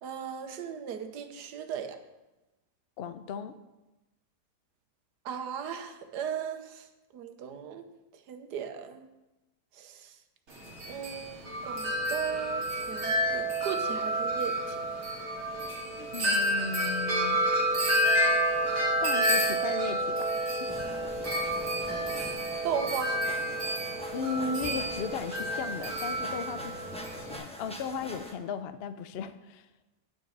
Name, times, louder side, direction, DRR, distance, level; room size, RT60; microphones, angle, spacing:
voice 1, 0.0-2.0 5.2-6.8 7.1-7.9 8.3-9.1 9.7-10.1 10.9-14.9 22.6-23.2, right 7 dB, 90° right, 8 dB, 1.4 m, -37 dB
voice 2, 3.0-3.6 16.0-17.5 19.0-20.8 24.1-26.8 27.2-29.7, left 6 dB, 70° left, 11 dB, 0.5 m, -36 dB
Wind chime, 10.5-27.4, right 1 dB, 45° right, 1.9 m, -29 dB
sound 1, 20.7-28.3, equal, 5° left, 0.7 m, -44 dB
9.5 x 5.3 x 7.3 m, 1.0 s
omnidirectional pair, 1.7 m